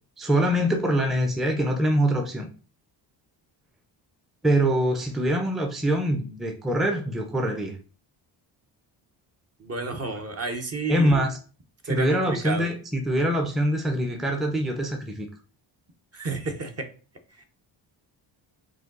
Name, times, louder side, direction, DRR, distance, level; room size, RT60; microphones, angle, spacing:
voice 1, 0.2-2.5 4.4-7.8 10.9-11.4 11.8-15.3, right 1 dB, ahead, 4 dB, 0.6 m, -24 dB
voice 2, 9.6-11.3 11.8-12.7 16.1-16.9 17.4-17.5, right 3 dB, 30° right, 5 dB, 0.9 m, -31 dB
4.9 x 2.3 x 3.8 m, 0.38 s
cardioid pair, 75°, 48 cm